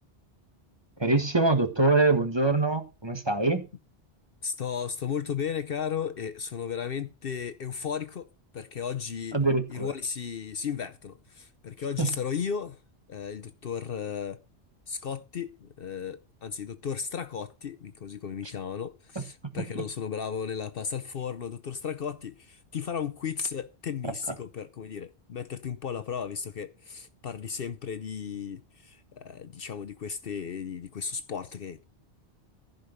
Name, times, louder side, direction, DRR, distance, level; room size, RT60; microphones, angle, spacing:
voice 1, 1.0-3.6 9.3-9.9 12.0-12.1 19.1-19.8 24.0-24.1, right 3 dB, 25° right, 1.5 m, -25 dB
voice 2, 4.4-8.3 8.5-9.4 9.7-12.8 13.1-14.4 14.9-31.8, left 7 dB, 60° left, 0.9 m, -35 dB
15.0 x 5.3 x 6.5 m
omnidirectional pair, 1.2 m